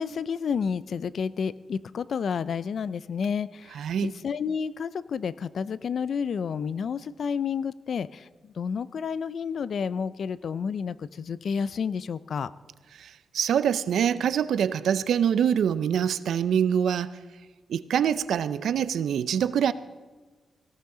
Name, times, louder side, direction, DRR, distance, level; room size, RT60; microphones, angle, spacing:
voice 1, 0.0-12.5, left 6 dB, 65° left, 17 dB, 0.4 m, -30 dB
voice 2, 3.7-4.1 13.0-17.1 17.7-19.7, right 8 dB, 85° right, 15 dB, 0.5 m, -25 dB
18.5 x 16.5 x 3.8 m, 1.3 s
cardioid pair, 100°, 0 cm